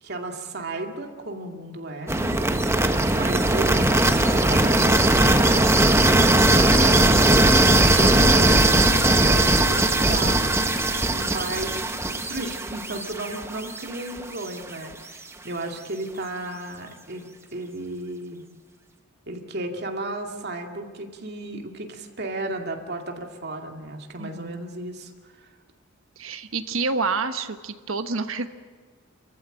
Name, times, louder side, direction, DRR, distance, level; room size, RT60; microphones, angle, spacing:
voice 1, 0.0-2.5 3.1-7.3 8.0-10.4 11.1-18.4 19.3-25.5, right 2 dB, 50° right, 3 dB, 2.4 m, -34 dB
sound 1, 2.1-14.0, right 1 dB, 15° right, 1.1 m, -19 dB
voice 2, 24.2-24.6 26.2-28.5, right 4 dB, 75° right, 8 dB, 1.2 m, -28 dB
28.0 x 14.5 x 9.1 m, 1.5 s
head